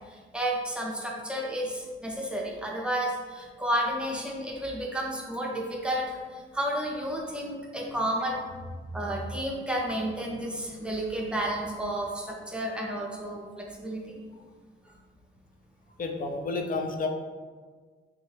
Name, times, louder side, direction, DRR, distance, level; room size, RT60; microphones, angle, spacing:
voice 1, 0.1-8.5 8.9-14.0, right 1 dB, 5° right, -2 dB, 0.6 m, -31 dB
voice 2, 16.0-17.1, left 3 dB, 40° left, 3 dB, 0.4 m, -30 dB
3.6 x 2.1 x 3.2 m, 1.5 s
cardioid pair, 95°, 21 cm